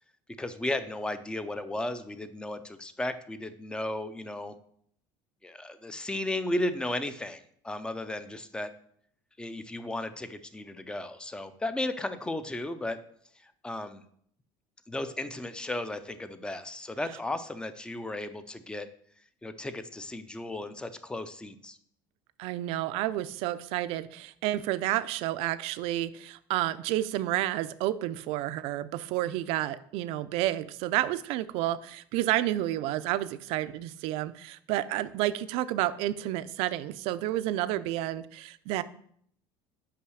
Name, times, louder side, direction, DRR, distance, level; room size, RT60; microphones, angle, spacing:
voice 1, 0.4-4.5 5.4-8.7 9.4-13.0 13.4-14.0 14.9-18.9 19.4-21.8, left 1 dB, 10° left, 12 dB, 0.4 m, -35 dB
voice 2, 22.4-38.8, right 14 dB, 65° right, 14 dB, 0.5 m, -30 dB
5.7 x 5.6 x 6.3 m, 0.65 s
cardioid pair, 150°, 11 cm